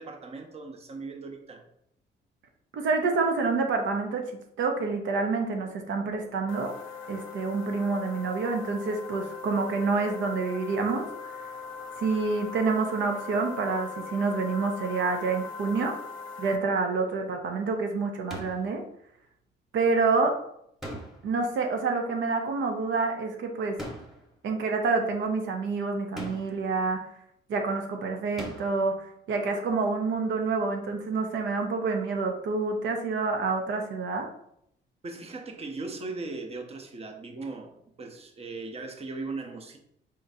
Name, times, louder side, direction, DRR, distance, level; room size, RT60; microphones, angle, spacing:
voice 1, 0.0-1.6 35.0-39.8, right 3 dB, 30° right, 4 dB, 0.7 m, -38 dB
voice 2, 2.7-4.3 4.6-6.7 7.1-11.3 12.0-16.0 16.4-18.8 19.7-20.4 21.2-23.8 24.4-27.1 27.5-34.3, right 4 dB, 75° right, 4 dB, 0.7 m, -28 dB
sound 1, 6.5-16.6, left 5 dB, 85° left, 0.6 m, -40 dB
sound 2, 18.3-18.7 20.8-21.5 23.8-24.3 26.1-26.7 28.4-28.9, equal, ahead, 1.1 m, -40 dB
4.2 x 3.7 x 2.7 m, 0.73 s
cardioid pair, 90°, 20 cm